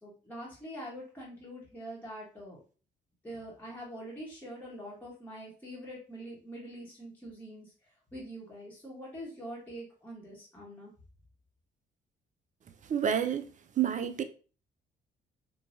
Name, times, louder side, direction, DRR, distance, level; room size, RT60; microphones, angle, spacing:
voice 1, 0.0-2.6 3.2-7.7 8.1-10.9, equal, 10° left, 1.1 m, -44 dB
voice 2, 12.9-13.5 13.8-14.2, right 9 dB, 40° right, 0.4 m, -28 dB
3.1 x 2.2 x 2.6 m
cardioid pair, 90°, 20 cm